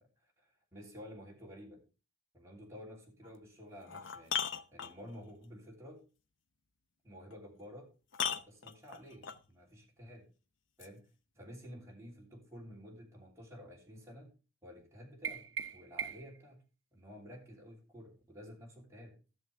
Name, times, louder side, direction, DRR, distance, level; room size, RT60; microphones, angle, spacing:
voice 1, 0.4-1.8 2.3-4.4 4.7-6.0 7.0-7.9 8.2-10.3 10.8-11.1 11.3-14.3 14.6-15.4 15.7-16.6 16.9-19.2, equal, 15° right, -3 dB, 3.2 m, -51 dB
sound 1, 3.2-3.3 3.8-5.3 7.3-7.4 8.1-9.4 10.8-10.9, left 8 dB, 65° left, 0.7 m, -37 dB
sound 2, 15.2-16.4, right 8 dB, 65° right, 0.7 m, -40 dB
13.0 x 7.2 x 3.4 m, 0.33 s
head